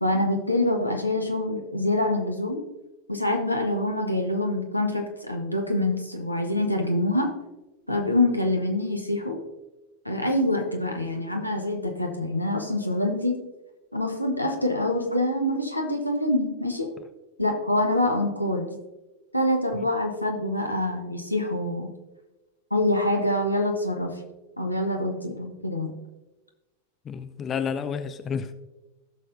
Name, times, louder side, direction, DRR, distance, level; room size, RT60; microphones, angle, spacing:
voice 1, 0.0-2.6 3.1-7.3 7.9-9.4 10.0-13.4 13.9-16.9 17.4-18.7 19.3-21.9 22.7-24.1 24.6-25.9, left 1 dB, 90° left, 1.3 m, -25 dB
voice 2, 27.0-28.5, left 6 dB, 25° left, 0.5 m, -30 dB
16.0 x 6.6 x 2.7 m
figure-of-eight pair, 90°, 0 cm